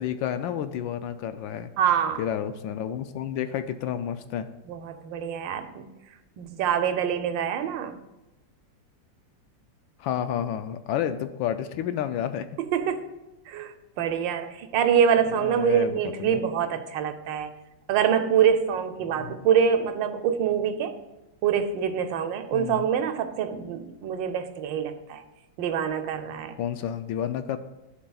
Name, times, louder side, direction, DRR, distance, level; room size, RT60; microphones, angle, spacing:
voice 1, 0.0-1.7 2.2-4.5 10.0-12.5 15.4-16.4 19.0-19.5 22.5-22.9 26.6-27.6, left 9 dB, 85° left, 10 dB, 1.3 m, -30 dB
voice 2, 1.8-2.2 4.7-5.9 6.4-8.0 12.6-13.1 13.5-17.5 17.9-20.9 21.4-25.2 25.6-26.6, right 8 dB, 80° right, 7 dB, 1.4 m, -25 dB
11.5 x 7.0 x 2.3 m, 0.99 s
omnidirectional pair, 2.0 m